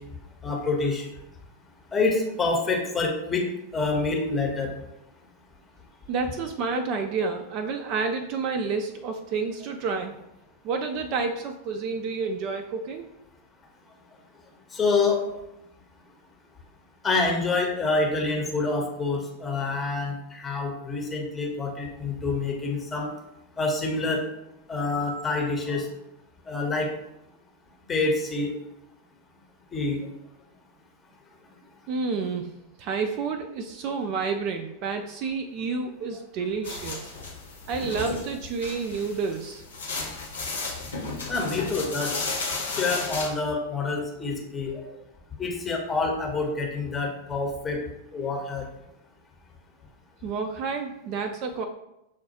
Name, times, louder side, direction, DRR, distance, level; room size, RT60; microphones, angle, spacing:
voice 1, 0.4-1.1 1.9-4.7 14.7-15.2 17.0-23.1 23.6-24.2 24.7-25.9 26.5-26.9 27.9-28.6 29.7-30.0 41.3-42.3 42.8-44.9 45.4-47.8 48.1-48.6, left 3 dB, 15° left, 1 dB, 0.8 m, -27 dB
voice 2, 6.1-10.2 10.6-13.0 31.9-32.5 32.8-37.1 37.7-39.6 50.2-51.7, right 4 dB, 40° right, 5 dB, 0.3 m, -29 dB
sound 1, 36.6-43.3, left 3 dB, 70° left, 0.9 m, -34 dB
6.2 x 2.3 x 2.8 m, 0.87 s
figure-of-eight pair, 90°, 0 cm